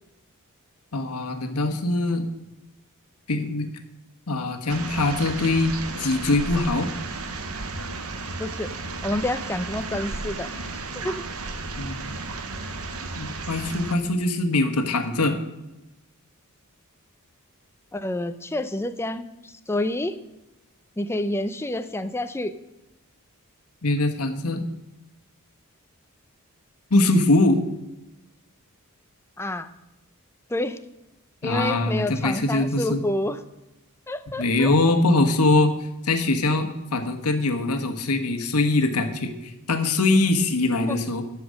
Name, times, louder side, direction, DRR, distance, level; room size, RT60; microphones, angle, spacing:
voice 1, 0.9-2.3 3.3-3.7 4.3-5.7 6.0-6.9 11.8-12.1 13.2-15.4 23.8-24.6 26.9-27.6 31.4-33.0 34.4-35.7 36.0-41.2, left 2 dB, 85° left, 6 dB, 1.3 m, -22 dB
sound 1, 4.7-14.0, right 3 dB, 70° right, 1.1 m, -33 dB
voice 2, 8.4-8.7 9.0-10.5 11.0-11.2 17.9-20.1 21.0-22.5 29.4-29.7 30.5-30.8 31.4-33.4 34.1-34.7 40.9-41.1, left 1 dB, 10° left, 10 dB, 0.6 m, -28 dB
12.0 x 7.1 x 6.5 m, 0.96 s
head